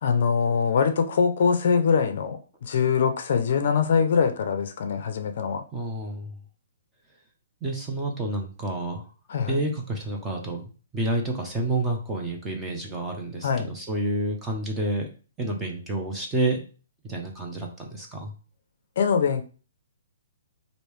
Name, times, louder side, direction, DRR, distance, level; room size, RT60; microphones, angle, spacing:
voice 1, 0.0-5.6 9.3-9.6 13.4-13.7 19.0-19.4, left 6 dB, 50° left, 7 dB, 0.4 m, -23 dB
voice 2, 5.7-6.3 7.6-9.0 9.5-15.1 15.4-16.6 17.0-18.3, right 2 dB, 10° right, 0 dB, 0.5 m, -29 dB
3.1 x 2.6 x 3.2 m, 0.37 s
hypercardioid pair, 170°, 0 cm